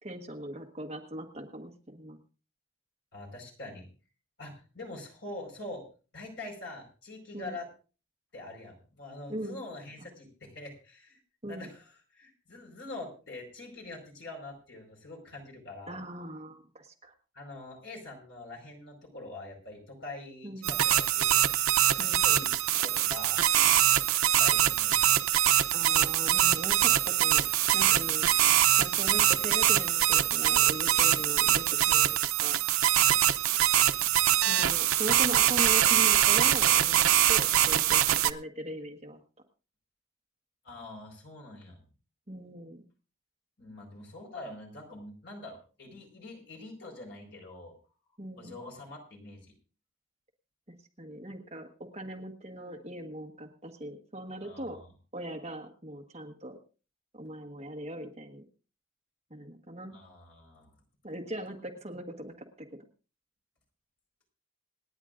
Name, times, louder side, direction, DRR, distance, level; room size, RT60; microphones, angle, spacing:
voice 1, 0.0-2.2 7.3-7.6 9.3-9.6 11.4-11.7 15.9-17.1 20.4-20.7 22.0-22.2 25.7-27.5 27.7-32.6 34.4-39.2 42.3-42.8 48.2-48.6 51.0-54.8 55.1-56.6 57.1-58.4 59.3-60.0 61.0-62.7, right 1 dB, 30° right, 4 dB, 1.3 m, -40 dB
voice 2, 3.1-3.9 4.4-5.8 6.1-7.7 8.3-11.2 11.5-16.0 17.3-21.4 21.8-22.5 22.8-23.4 24.4-25.2 34.0-34.5 40.6-41.8 43.6-47.7 48.3-49.5 54.4-54.9 59.9-60.7, left 2 dB, 55° left, 1 dB, 4.7 m, -44 dB
sound 1, 20.6-38.3, right 12 dB, 85° right, 0.6 m, -24 dB
27.0 x 10.0 x 2.5 m, 0.36 s
head